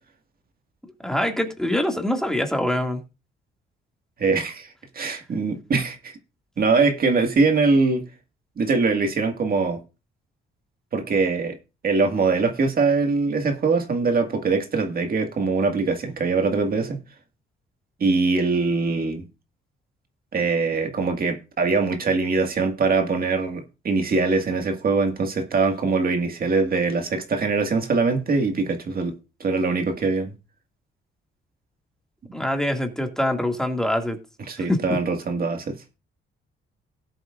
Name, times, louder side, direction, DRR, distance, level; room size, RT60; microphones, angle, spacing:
voice 1, 1.0-3.0 32.3-34.2 34.7-34.8, left 1 dB, 5° left, 2.1 m, -24 dB
voice 2, 4.2-4.7 4.9-6.2 6.6-8.0 8.6-9.8 10.9-11.6 11.8-17.0 18.0-19.3 20.3-29.1 29.4-30.3 34.5-35.7, right 4 dB, 45° right, 1.9 m, -22 dB
18.0 x 7.8 x 2.5 m
cardioid pair, 90°, 20 cm